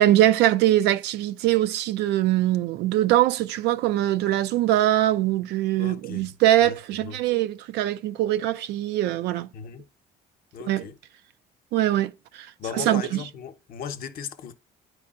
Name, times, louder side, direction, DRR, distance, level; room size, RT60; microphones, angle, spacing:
voice 1, 0.0-9.5 10.7-10.8 11.7-12.5 12.7-13.2, right 13 dB, 80° right, 0.4 m, -22 dB
voice 2, 5.8-6.3 6.6-6.8 7.0-7.2 9.5-9.8 10.5-11.0 12.6-14.5, left 7 dB, 60° left, 0.8 m, -37 dB
9.5 x 4.7 x 2.4 m
cardioid pair, 110°, 17 cm